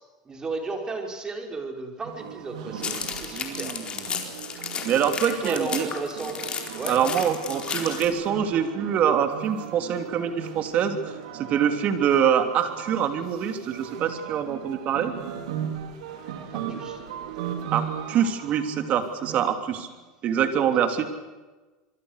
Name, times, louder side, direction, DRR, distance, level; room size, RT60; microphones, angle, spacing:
voice 1, 0.3-3.7 5.3-6.4 6.7-7.0 16.5-17.0 17.4-17.5 19.3-19.4 20.6-20.8, right 3 dB, 20° right, 3 dB, 5.1 m, -34 dB
sound 1, 2.0-19.9, right 9 dB, 85° right, 4.0 m, -38 dB
sound 2, 2.8-8.1, left 6 dB, 25° left, 4.3 m, -33 dB
voice 2, 3.3-3.8 4.1-4.3 4.8-5.9 6.9-15.1 17.7-19.9 20.2-21.1, right 8 dB, 40° right, 7 dB, 3.3 m, -25 dB
26.5 x 23.0 x 6.7 m, 1.2 s
supercardioid pair, 125°, 4 cm